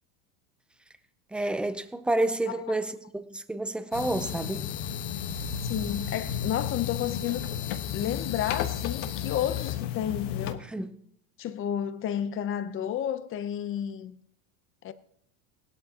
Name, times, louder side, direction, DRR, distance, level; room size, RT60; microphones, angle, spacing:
voice 1, 1.3-4.7 10.7-10.9, right 2 dB, 5° right, 0.5 m, -29 dB
sound 1, 3.9-10.5, left 9 dB, 60° left, 1.3 m, -33 dB
voice 2, 5.6-10.7 11.4-14.2 14.8-14.9, left 10 dB, 30° left, 0.7 m, -32 dB
17.5 x 12.5 x 2.9 m
supercardioid pair, 130°, 41 cm